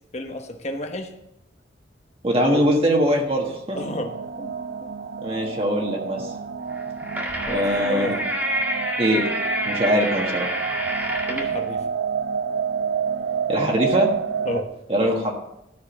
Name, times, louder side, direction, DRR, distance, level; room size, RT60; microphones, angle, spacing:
voice 1, 0.1-1.1 2.4-2.7 3.8-4.5 4.8-4.9 7.4-8.2 11.3-11.8 14.4-14.7, left 1 dB, 35° left, 3 dB, 1.0 m, -31 dB
voice 2, 2.2-3.8 5.2-6.3 7.4-8.1 9.0-9.3 9.7-10.5 13.5-14.1 14.9-15.3, equal, 30° right, 0 dB, 1.5 m, -22 dB
sound 1, 3.7-14.6, right 6 dB, 80° right, 0.7 m, -29 dB
sound 2, 6.7-11.6, equal, 10° right, 2.0 m, -28 dB
13.0 x 6.2 x 6.0 m, 0.81 s
head